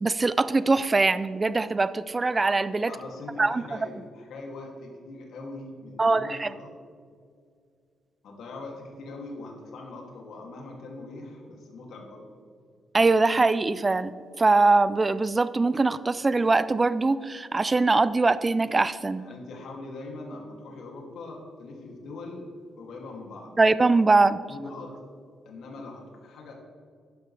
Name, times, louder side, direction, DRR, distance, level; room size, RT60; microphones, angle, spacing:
voice 1, 0.0-2.9 3.4-3.6 6.0-6.5 12.9-19.3 23.6-24.4, right 3 dB, 20° right, 15 dB, 0.4 m, -22 dB
voice 2, 2.9-6.7 8.2-12.3 19.2-22.4 22.8-23.5 24.5-25.0 25.4-26.5, left 2 dB, 75° left, 0 dB, 2.6 m, -41 dB
13.0 x 10.5 x 3.3 m, 2.2 s
cardioid pair, 150°, 0 cm